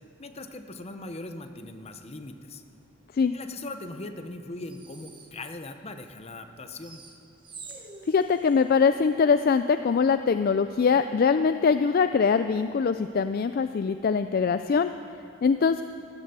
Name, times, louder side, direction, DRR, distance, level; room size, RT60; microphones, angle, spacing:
voice 1, 0.2-2.6 3.3-7.0, left 2 dB, 30° left, 8 dB, 0.8 m, -40 dB
sound 1, 4.7-5.3 6.8-8.6, right 4 dB, 25° right, 1.2 m, -45 dB
voice 2, 8.1-14.9 15.4-15.8, left 5 dB, 45° left, 10 dB, 0.3 m, -23 dB
15.5 x 11.0 x 6.8 m, 2.7 s
head